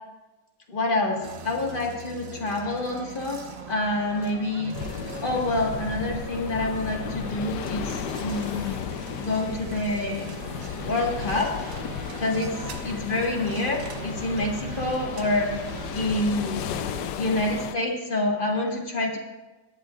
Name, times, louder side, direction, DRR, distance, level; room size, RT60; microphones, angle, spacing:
voice 1, 0.7-3.4 3.7-4.7 5.2-7.8 8.2-8.9 9.2-10.3 10.8-11.5 12.2-12.6 12.8-15.5 15.9-16.6 17.2-19.2, left 2 dB, 30° left, 0 dB, 1.7 m, -27 dB
sound 1, 1.2-17.1, right 5 dB, 60° right, 1.3 m, -40 dB
sound 2, 4.7-17.8, left 9 dB, 85° left, 1.2 m, -35 dB
17.0 x 12.0 x 2.4 m, 1.1 s
omnidirectional pair, 1.8 m